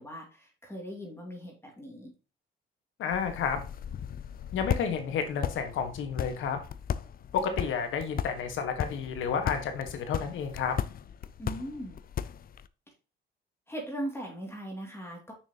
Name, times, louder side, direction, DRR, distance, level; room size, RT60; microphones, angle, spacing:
voice 1, 0.0-2.1 11.4-12.0 13.7-15.3, right 1 dB, 10° left, 0 dB, 2.5 m, -39 dB
voice 2, 3.0-3.6 4.5-6.6 7.3-10.8, left 6 dB, 80° left, 7 dB, 1.6 m, -31 dB
sound 1, 3.1-12.7, left 9 dB, 50° left, 0.5 m, -36 dB
6.5 x 6.1 x 2.9 m, 0.34 s
cardioid pair, 90°, 20 cm